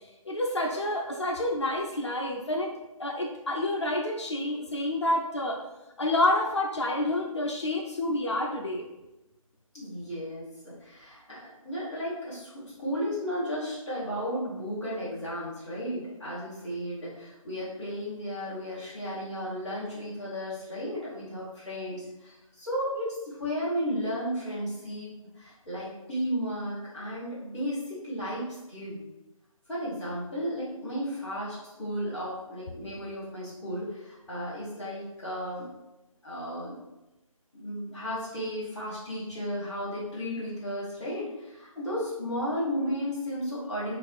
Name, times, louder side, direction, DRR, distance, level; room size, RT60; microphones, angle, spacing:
voice 1, 0.2-2.7 3.0-5.6 6.0-8.8, left 1 dB, 50° left, 0 dB, 0.6 m, -28 dB
voice 2, 9.7-25.1 25.4-29.0 29.7-35.7 36.2-36.7 37.5-44.0, equal, 5° left, -17 dB, 0.9 m, -34 dB
3.8 x 2.5 x 4.6 m, 0.98 s
figure-of-eight pair, 175°, 18 cm